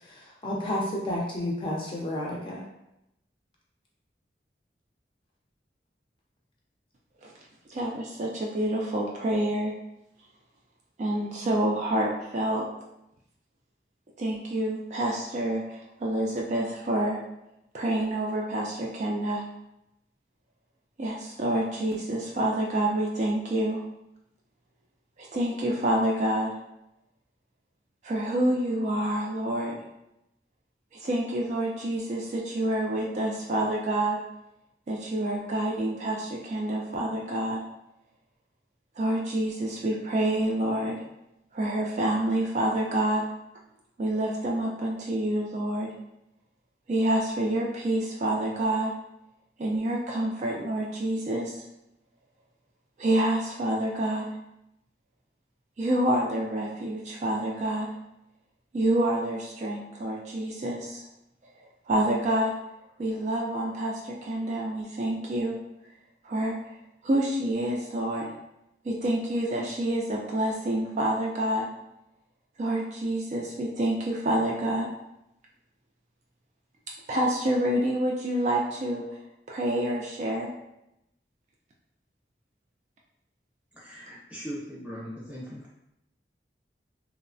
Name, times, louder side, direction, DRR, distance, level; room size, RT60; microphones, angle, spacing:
voice 1, 0.0-2.6, left 1 dB, 30° left, -3 dB, 0.4 m, -31 dB
voice 2, 7.7-9.7 11.0-12.6 14.2-17.2 17.7-19.4 21.0-23.8 25.2-26.5 28.0-29.8 30.9-34.2 34.9-37.6 39.0-41.0 41.5-43.2 44.0-45.9 46.9-48.9 49.6-51.6 53.0-54.3 55.8-57.9 58.7-61.0 61.9-62.5 63.0-65.6 66.2-66.6 67.0-68.3 68.8-71.7 72.6-74.9 77.1-79.0 79.5-80.5 84.1-84.2, right 1 dB, 40° right, -2 dB, 0.3 m, -27 dB
voice 3, 83.7-85.7, equal, 5° right, -7 dB, 0.7 m, -39 dB
3.0 x 2.0 x 2.5 m, 0.86 s
head